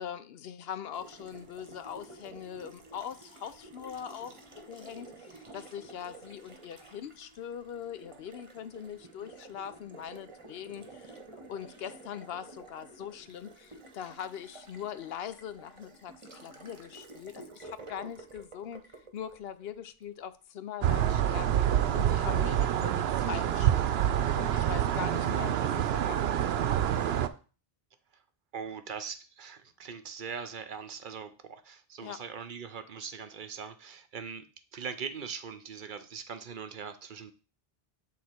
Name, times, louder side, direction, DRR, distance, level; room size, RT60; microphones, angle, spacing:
voice 1, 0.0-11.2 11.5-18.8 19.1-21.6 21.9-26.7 32.0-32.2, left 9 dB, 75° left, 0.8 m, -42 dB
Water tap faucet, 0.9-20.1, right 2 dB, 30° right, 1.0 m, -51 dB
sound 1, 20.8-27.3, right 10 dB, 85° right, 0.8 m, -27 dB
voice 2, 28.5-34.5 34.7-37.3, right 6 dB, 60° right, 0.8 m, -41 dB
8.3 x 3.7 x 4.4 m
omnidirectional pair, 1.0 m